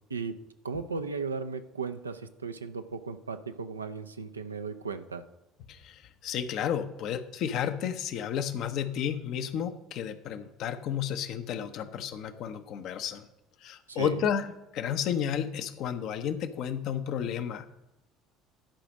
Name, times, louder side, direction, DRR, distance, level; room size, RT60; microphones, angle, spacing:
voice 1, 0.6-5.2 13.9-14.2, right 5 dB, 85° right, 8 dB, 0.6 m, -36 dB
voice 2, 5.7-13.2 13.6-14.5 14.7-17.7, left 8 dB, 55° left, 9 dB, 0.8 m, -32 dB
11.5 x 5.0 x 6.5 m, 0.94 s
figure-of-eight pair, 60°, 0 cm